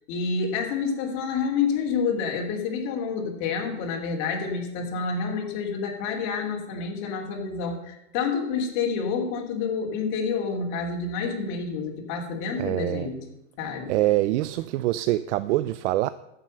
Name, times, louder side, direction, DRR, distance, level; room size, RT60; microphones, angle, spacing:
voice 1, 0.0-13.2 13.6-13.9, left 5 dB, 50° left, 2 dB, 3.3 m, -28 dB
voice 2, 12.6-13.1 13.9-16.1, right 16 dB, 70° right, 14 dB, 0.6 m, -24 dB
14.5 x 7.7 x 6.7 m, 0.89 s
supercardioid pair, 140°, 36 cm